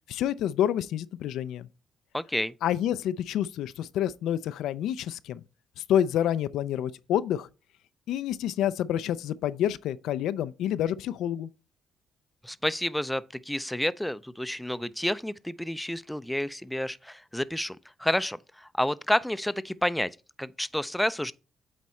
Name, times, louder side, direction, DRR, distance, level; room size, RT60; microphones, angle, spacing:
voice 1, 0.1-1.7 2.6-5.4 5.9-7.5 8.1-11.5, left 10 dB, 85° left, 0.3 m, -28 dB
voice 2, 2.1-2.5 12.4-20.1 20.4-21.3, left 1 dB, 5° left, 0.3 m, -30 dB
8.2 x 4.2 x 4.2 m
cardioid pair, 90°, 0 cm